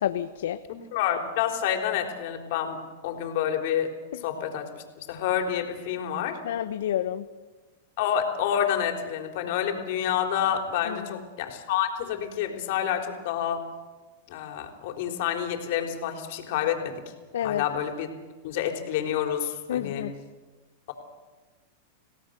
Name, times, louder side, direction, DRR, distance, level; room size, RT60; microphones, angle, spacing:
voice 1, 0.0-0.6 6.4-7.2 10.9-11.2 17.3-17.6 19.7-20.1, left 11 dB, 75° left, 10 dB, 0.9 m, -29 dB
voice 2, 0.7-2.8 3.0-3.9 4.2-6.4 8.0-13.7 14.3-17.0 17.4-18.1 18.4-20.1, left 9 dB, 60° left, 4 dB, 3.8 m, -28 dB
28.5 x 17.0 x 6.7 m, 1.3 s
hypercardioid pair, 120°, 0 cm